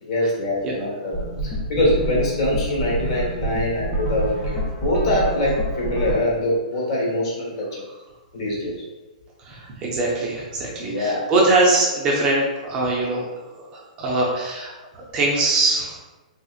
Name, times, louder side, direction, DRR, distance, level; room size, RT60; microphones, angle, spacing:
voice 1, 0.0-7.8 8.3-8.8 10.8-11.3, left 1 dB, 45° left, -3 dB, 1.3 m, -24 dB
sound 1, 1.1-6.1, right 1 dB, 15° left, 0.7 m, -27 dB
voice 2, 9.4-13.3 13.6-16.0, right 2 dB, 20° right, -3 dB, 0.6 m, -22 dB
3.5 x 2.8 x 2.4 m, 1.1 s
hypercardioid pair, 165°, 4 cm